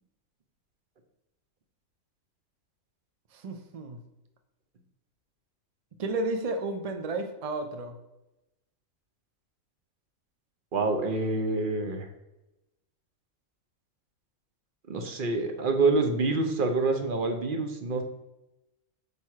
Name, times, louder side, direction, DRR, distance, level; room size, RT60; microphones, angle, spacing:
voice 1, 3.3-4.0 6.0-8.0, right 2 dB, 70° right, 5 dB, 0.3 m, -32 dB
voice 2, 10.7-12.1 14.9-18.0, right 3 dB, 45° right, 6 dB, 0.8 m, -27 dB
5.2 x 4.5 x 4.7 m, 0.94 s
omnidirectional pair, 1.5 m